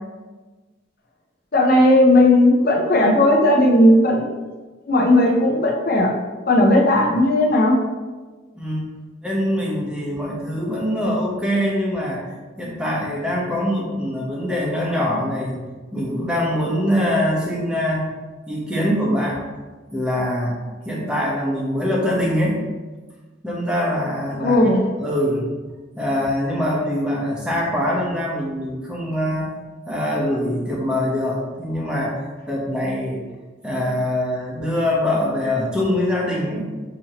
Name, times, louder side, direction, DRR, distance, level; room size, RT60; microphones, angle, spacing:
voice 1, 1.5-4.3 4.9-6.1 6.5-7.8 24.4-24.9, left 1 dB, 50° left, 0 dB, 0.7 m, -15 dB
voice 2, 8.5-8.9 9.2-12.2 12.6-15.6 15.9-18.1 18.5-19.4 19.9-20.6 20.8-22.6 23.4-24.6 25.0-25.5 26.0-29.5 29.9-33.2 33.6-36.7, left 1 dB, 5° right, -4 dB, 0.8 m, -23 dB
6.1 x 2.9 x 2.8 m, 1.3 s
head